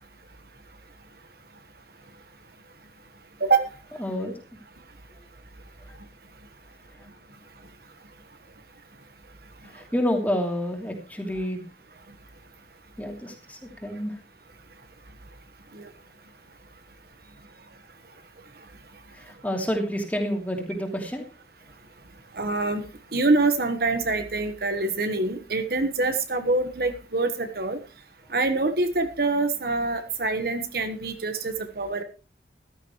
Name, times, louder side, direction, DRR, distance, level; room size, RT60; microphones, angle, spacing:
voice 1, 3.4-3.7 15.7-15.9 22.3-22.8 23.1-27.8 28.3-32.0, right 3 dB, 55° right, 8 dB, 1.4 m, -25 dB
voice 2, 4.0-4.4 5.8-6.0 7.0-7.1 9.6-11.6 13.0-14.2 19.1-21.3, equal, 10° left, 2 dB, 2.8 m, -29 dB
14.5 x 13.0 x 3.2 m, 0.33 s
head